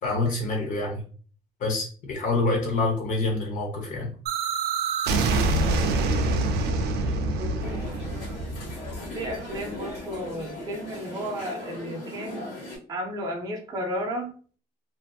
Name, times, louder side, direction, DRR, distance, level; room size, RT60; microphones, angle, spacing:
voice 1, 0.0-1.0 1.6-4.1, left 3 dB, 50° left, 0 dB, 0.7 m, -26 dB
sound 1, 4.3-10.0, right 2 dB, 85° right, 0.4 m, -26 dB
voice 2, 5.3-5.9 7.3-7.9 9.1-12.5 12.9-14.3, equal, 25° right, 1 dB, 0.5 m, -33 dB
sound 2, 7.6-12.8, left 1 dB, 80° left, 1.3 m, -38 dB
2.5 x 2.5 x 2.2 m, 0.41 s
cardioid pair, 175°, 17 cm